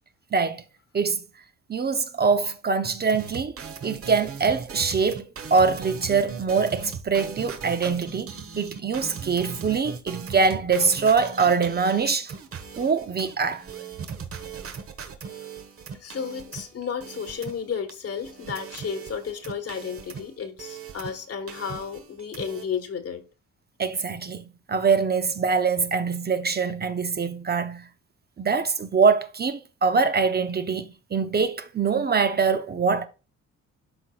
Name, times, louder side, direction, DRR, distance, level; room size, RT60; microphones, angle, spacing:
voice 1, 0.3-0.6 0.9-1.2 1.7-3.5 3.8-12.3 12.8-13.6 23.8-27.8 28.4-33.1, right 5 dB, 30° right, 0.7 m, -24 dB
sound 1, 3.1-17.9 18.1-21.2 21.5-22.6, right 6 dB, 50° right, 1.2 m, -39 dB
voice 2, 16.0-23.2, left 7 dB, 50° left, 1.5 m, -33 dB
12.0 x 4.2 x 2.4 m
cardioid pair, 90°, 30 cm